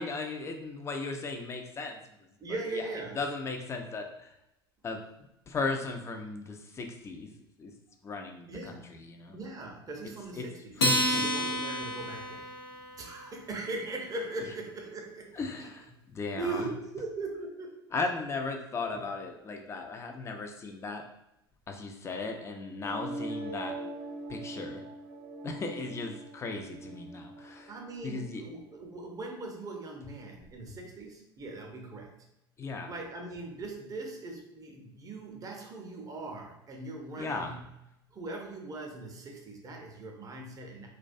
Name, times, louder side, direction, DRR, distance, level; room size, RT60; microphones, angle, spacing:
voice 1, 0.0-2.0 2.7-2.8 3.2-4.3 4.8-5.0 5.5-7.3 7.6-7.7 8.0-9.4 10.3-10.5 10.8-11.5 15.3-16.7 17.9-21.0 21.7-23.8 24.3-24.8 25.4-27.7 28.0-28.4 32.6-32.9 37.2-37.6, left 3 dB, 20° left, 4 dB, 0.4 m, -36 dB
voice 2, 2.4-3.2 8.5-8.9 9.3-12.5 13.0-15.3 15.6-15.7 16.4-17.8 18.9-19.0 27.7-32.2 32.9-37.7 38.1-40.9, right 2 dB, 25° right, 1 dB, 0.6 m, -40 dB
Acoustic guitar, 10.8-13.4, equal, 80° left, 0.5 m, -30 dB
sound 1, 22.7-28.6, right 2 dB, 70° right, 0.5 m, -42 dB
2.2 x 2.2 x 2.5 m, 0.85 s
figure-of-eight pair, 75°, 13 cm